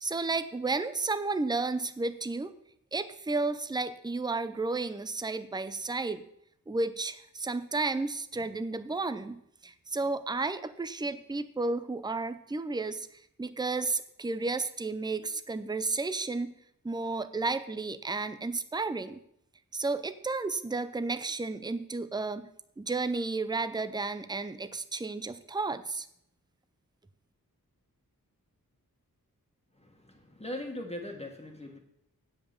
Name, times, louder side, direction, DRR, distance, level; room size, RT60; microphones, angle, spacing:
voice 1, 0.0-2.5 2.9-6.3 6.7-13.1 13.4-16.6 16.8-19.2 19.7-22.5 22.8-26.1, right 3 dB, 10° right, 12 dB, 0.6 m, -32 dB
voice 2, 29.7-31.8, left 1 dB, 20° left, 1 dB, 1.8 m, -40 dB
8.0 x 7.8 x 6.9 m, 0.73 s
wide cardioid pair, 100°, 35 cm